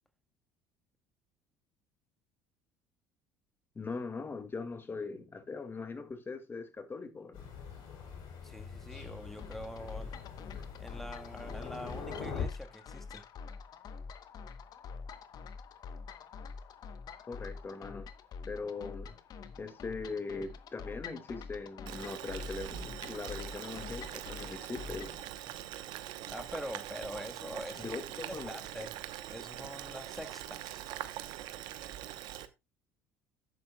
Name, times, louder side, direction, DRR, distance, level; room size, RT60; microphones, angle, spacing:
voice 1, 3.8-7.5 17.3-18.1 18.5-19.2 19.6-25.1 27.7-28.5, left 4 dB, 25° left, 2.1 m, -41 dB
Thunder, 7.3-12.4, left 7 dB, 70° left, 4.2 m, -43 dB
voice 2, 8.4-10.2 10.8-13.2 26.3-28.0 28.3-28.9 29.3-30.8, equal, 5° left, 1.5 m, -44 dB
sound 1, 9.4-25.2, left 5 dB, 50° left, 1.0 m, -46 dB
Boiling, 21.9-32.5, right 13 dB, 70° right, 1.0 m, -43 dB
11.5 x 8.4 x 2.3 m
hypercardioid pair, 75°, 8 cm